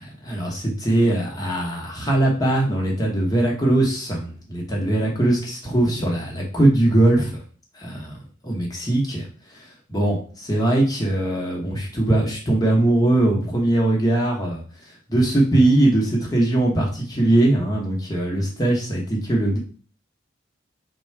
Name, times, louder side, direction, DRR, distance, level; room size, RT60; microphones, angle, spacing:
voice 1, 0.2-7.4 7.8-9.2 9.5-9.6 9.9-14.6 15.1-19.6, right 1 dB, 20° left, -2 dB, 1.0 m, -21 dB
3.7 x 2.3 x 4.5 m, 0.40 s
head